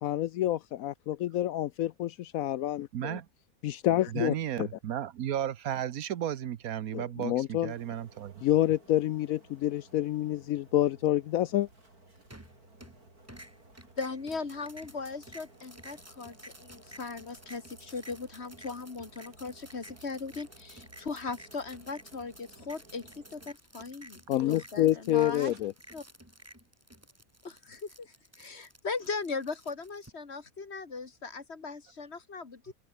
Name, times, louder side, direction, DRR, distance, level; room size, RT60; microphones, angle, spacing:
voice 1, 0.0-3.2 3.6-4.7 6.9-7.7 8.4-11.7 24.3-25.7, left 13 dB, 75° left, 1.0 m, -28 dB
voice 2, 2.9-3.3 4.1-8.3 25.4-25.5 28.5-28.6, right 10 dB, 75° right, 1.3 m, -34 dB
sound 1, 7.7-23.5, right 2 dB, 90° right, 7.7 m, -58 dB
sound 2, 12.3-13.0 13.3-30.1, right 1 dB, 10° right, 3.5 m, -52 dB
voice 3, 14.0-25.5 25.9-26.0 27.4-32.7, left 4 dB, 45° left, 2.2 m, -39 dB
omnidirectional pair, 1.6 m